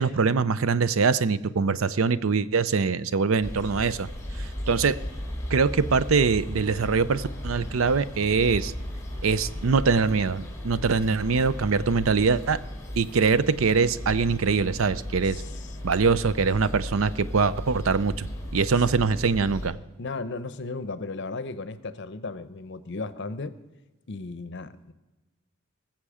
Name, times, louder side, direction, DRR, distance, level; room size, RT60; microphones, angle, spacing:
voice 1, 0.0-4.1 4.4-5.0 5.5-8.7 9.2-12.6 13.0-15.4 15.8-18.3 18.5-19.7, right 5 dB, 90° right, 16 dB, 0.6 m, -23 dB
sound 1, 3.4-19.7, left 1 dB, 15° left, 2.4 m, -36 dB
voice 2, 15.2-15.8 20.0-23.5 24.1-24.9, left 3 dB, 60° left, 14 dB, 0.8 m, -35 dB
20.0 x 7.4 x 4.9 m, 1.1 s
head